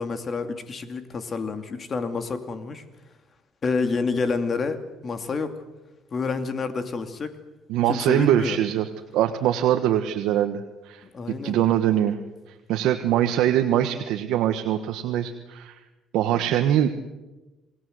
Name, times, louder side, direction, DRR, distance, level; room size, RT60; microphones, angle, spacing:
voice 1, 0.0-2.8 3.6-5.5 6.1-7.4 7.9-8.6 11.1-11.6, left 4 dB, 35° left, 8 dB, 2.6 m, -28 dB
voice 2, 7.7-11.0 11.4-12.2 12.7-15.8 16.1-16.9, right 11 dB, 80° right, 5 dB, 1.5 m, -23 dB
28.0 x 19.5 x 8.0 m, 1.1 s
cardioid pair, 120°, 0 cm